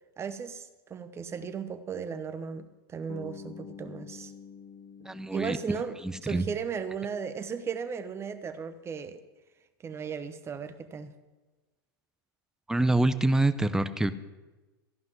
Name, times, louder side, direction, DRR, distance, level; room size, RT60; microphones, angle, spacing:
voice 1, 0.2-4.3 5.3-9.2 9.8-11.1, right 6 dB, 20° right, 10 dB, 0.9 m, -36 dB
Bass guitar, 3.1-7.2, left 6 dB, 35° left, 2.1 m, -48 dB
voice 2, 5.1-5.6 6.0-6.4 12.7-14.1, right 2 dB, 5° right, 12 dB, 0.6 m, -26 dB
14.0 x 5.6 x 9.5 m, 1.2 s
hypercardioid pair, 125°, 13 cm